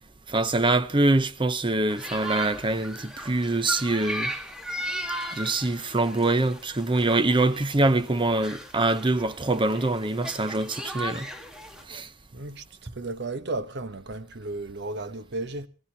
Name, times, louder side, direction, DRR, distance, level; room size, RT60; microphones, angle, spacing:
voice 1, 0.3-4.3 5.3-11.3 11.9-12.1, right 2 dB, 25° right, 0.8 m, -24 dB
sound 1, 1.9-11.8, equal, 5° right, 1.6 m, -37 dB
voice 2, 12.3-15.7, right 2 dB, 60° right, 1.1 m, -34 dB
25.0 x 17.0 x 2.9 m
head